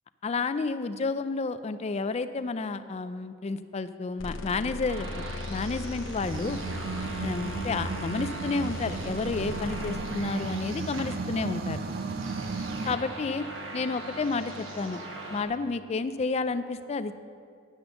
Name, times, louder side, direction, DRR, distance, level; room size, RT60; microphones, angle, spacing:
voice 1, 0.2-5.2 5.5-6.6 7.2-11.8 12.9-13.5 13.7-15.0 15.3-17.1, left 4 dB, 30° left, 11 dB, 0.3 m, -31 dB
sound 1, 4.2-9.9, left 2 dB, 65° left, 0.7 m, -38 dB
sound 2, 4.9-15.4, right 2 dB, 65° right, 1.1 m, -41 dB
sound 3, 6.2-13.0, right 4 dB, 45° right, 0.4 m, -35 dB
10.0 x 6.1 x 6.7 m, 2.3 s
head